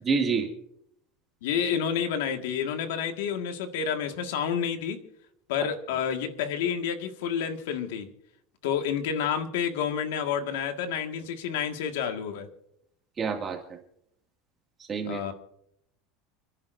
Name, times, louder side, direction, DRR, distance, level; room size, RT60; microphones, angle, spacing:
voice 1, 0.0-0.5 13.2-13.8 14.9-15.2, right 5 dB, 25° right, 1 dB, 2.2 m, -27 dB
voice 2, 1.4-5.1 5.5-8.1 8.6-12.5 15.1-15.3, left 7 dB, 90° left, 6 dB, 1.8 m, -29 dB
30.0 x 10.5 x 2.7 m, 0.73 s
supercardioid pair, 160°, 0 cm